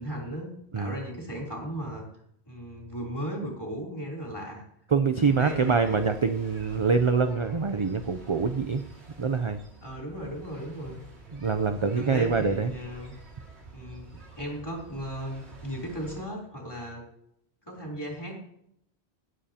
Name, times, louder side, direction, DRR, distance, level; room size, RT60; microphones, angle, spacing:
voice 1, 0.0-2.0 2.5-4.6 5.1-6.0 9.8-11.0 11.9-13.1 13.7-14.1 14.4-17.0 17.7-18.4, equal, 20° left, -2 dB, 3.6 m, -36 dB
voice 2, 4.9-8.8 9.2-9.6 11.3-12.7, right 5 dB, 35° right, 8 dB, 0.5 m, -25 dB
sound 1, 5.2-16.2, right 3 dB, 85° right, 2.7 m, -48 dB
17.5 x 10.0 x 2.9 m, 0.74 s
omnidirectional pair, 1.1 m